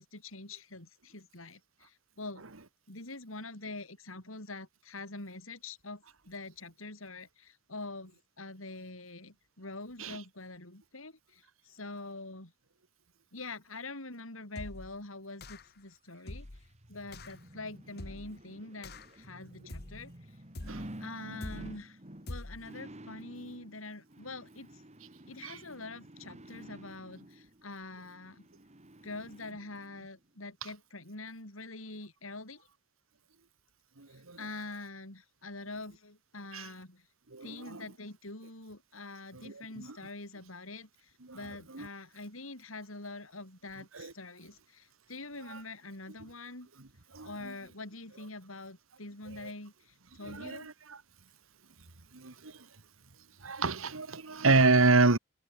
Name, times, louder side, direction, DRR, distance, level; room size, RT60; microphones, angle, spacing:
voice 1, 0.0-2.4 2.9-8.1 8.4-12.5 13.3-20.4 21.0-24.8 25.3-28.5 29.0-32.7 34.1-37.1 37.4-46.7 47.2-50.7, left 2 dB, 80° left, 5.5 m, -45 dB
sound 1, 14.6-15.0 15.4-15.8 16.3-16.7 17.1-17.4 18.0-18.4 18.8-19.2 19.7-20.1 20.6-21.0 21.4-21.8 22.3-22.7, left 2 dB, 55° left, 1.6 m, -44 dB
sound 2, 16.2-30.1 30.5-30.6, right 1 dB, 35° right, 3.2 m, -51 dB
voice 2, 34.0-34.4 36.5-36.7 37.3-37.8 39.4-40.0 41.2-41.4 41.7-41.9 43.9-44.1 45.5-45.6 47.1-47.5 49.3-49.5 50.2-51.0 52.1-52.7 53.4-55.2, right 3 dB, 80° right, 1.9 m, -28 dB
head